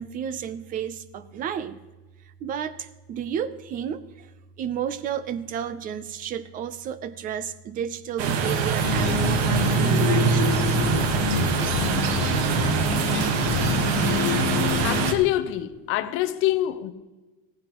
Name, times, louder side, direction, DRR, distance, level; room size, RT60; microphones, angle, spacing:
voice 1, 0.0-1.8 2.4-4.3 4.6-10.6, right 8 dB, 25° right, 0.6 m, -32 dB
sound 1, 8.2-15.1, right 6 dB, 90° right, 1.5 m, -24 dB
sound 2, 8.8-15.1, left 7 dB, 70° left, 1.6 m, -27 dB
voice 2, 14.8-16.9, left 14 dB, 45° left, 0.7 m, -25 dB
16.5 x 15.0 x 3.0 m
cardioid pair, 180°, 31 cm